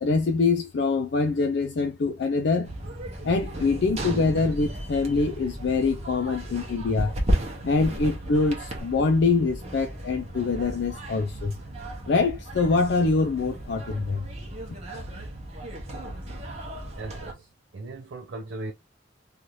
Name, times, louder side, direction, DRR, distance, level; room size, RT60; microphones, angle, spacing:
voice 1, 0.0-2.7 3.2-7.1 7.6-11.6 12.1-14.3, left 4 dB, 65° left, 0.4 m, -24 dB
sound 1, 2.6-17.3, right 1 dB, 35° right, 0.9 m, -34 dB
voice 2, 17.0-17.5 17.7-18.7, right 2 dB, 80° right, 0.5 m, -37 dB
2.7 x 2.4 x 3.0 m
head